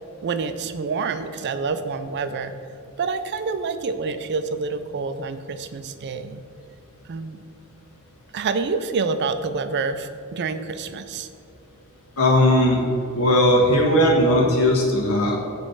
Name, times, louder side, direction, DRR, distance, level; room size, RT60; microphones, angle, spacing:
voice 1, 0.2-2.5 3.0-6.4 7.1-7.4 8.3-11.3, right 4 dB, 50° right, 10 dB, 0.4 m, -27 dB
voice 2, 12.2-12.8 13.1-15.4, left 1 dB, 75° left, -1 dB, 1.3 m, -18 dB
7.9 x 3.2 x 5.6 m, 2.5 s
head